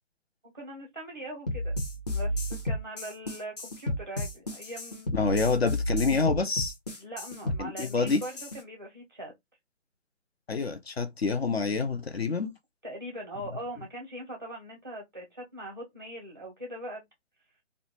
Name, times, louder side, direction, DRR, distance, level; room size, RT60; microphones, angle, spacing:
voice 1, 0.5-1.7 2.1-5.1 7.0-9.3 12.8-17.0, right 1 dB, 20° right, 0.5 m, -41 dB
sound 1, 1.5-8.6, equal, 35° left, 0.8 m, -32 dB
voice 2, 5.1-6.7 7.6-8.2 10.5-12.5, left 4 dB, 55° left, 0.5 m, -27 dB
2.5 x 2.1 x 2.8 m
figure-of-eight pair, 150°, 37 cm